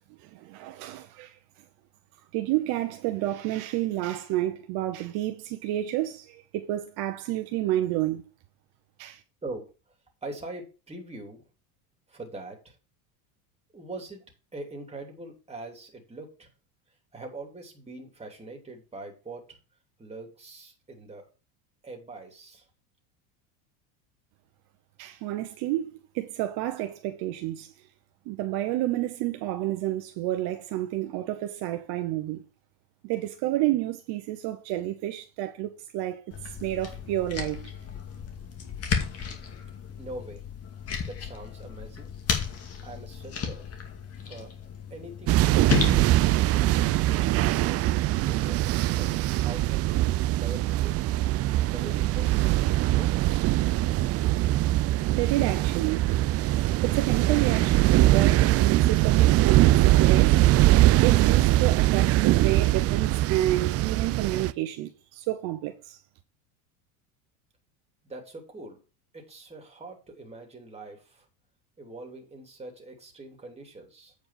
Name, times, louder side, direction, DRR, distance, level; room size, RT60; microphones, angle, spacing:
voice 1, 0.2-1.4 2.3-8.2 9.0-9.2 25.0-27.7 28.3-32.4 33.0-37.7 55.2-56.1 56.8-60.4 61.0-66.0, right 14 dB, 60° right, 1.1 m, -30 dB
voice 2, 9.4-9.7 10.2-11.5 12.1-12.8 13.7-14.2 14.5-16.5 17.1-19.6 20.0-21.3 21.8-22.7 40.0-40.4 41.0-42.1 42.8-43.7 44.2-44.5 44.9-47.7 48.2-49.9 50.3-51.0 51.6-53.5 68.0-68.8 69.1-71.3 71.8-74.1, right 2 dB, 15° right, 3.0 m, -43 dB
sound 1, 36.3-47.5, left 7 dB, 35° left, 2.3 m, -34 dB
sound 2, 45.3-64.5, right 16 dB, 35° right, 0.4 m, -22 dB
8.5 x 5.2 x 5.8 m
supercardioid pair, 115°, 43 cm